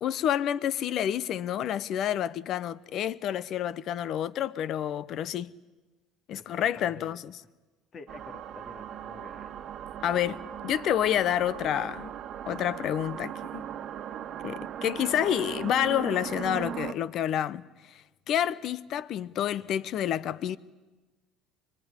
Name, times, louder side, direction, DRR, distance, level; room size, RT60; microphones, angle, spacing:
voice 1, 0.0-5.5 6.3-7.3 10.0-12.1 12.5-13.6 14.4-20.6, left 10 dB, 60° left, 0.9 m, -29 dB
voice 2, 6.3-7.2 7.9-9.5, left 4 dB, 40° left, 2.4 m, -49 dB
sound 1, 8.1-16.9, right 9 dB, 55° right, 1.3 m, -38 dB
24.5 x 20.0 x 10.0 m
supercardioid pair, 85°, 0 cm